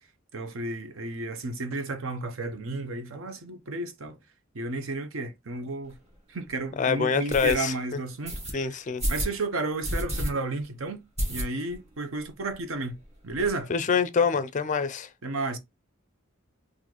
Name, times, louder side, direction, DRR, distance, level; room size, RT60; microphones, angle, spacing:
voice 1, 0.3-4.2 4.5-6.0 6.3-8.4 8.7-8.8 9.1-11.0 11.3-13.0 13.2-13.7 15.2-15.6, right 3 dB, 65° right, 0.7 m, -32 dB
sound 1, 5.9-6.0 6.5-6.6 7.3-7.6 8.3-8.5 9.0-9.4 9.8-10.3 10.6-10.7 11.2-11.8 12.2-12.3 12.5-12.6 12.9-13.5, equal, 30° right, 1.5 m, -30 dB
voice 2, 6.8-7.7 8.5-9.0 13.7-15.1, left 6 dB, 35° left, 0.4 m, -25 dB
4.1 x 2.5 x 2.9 m
head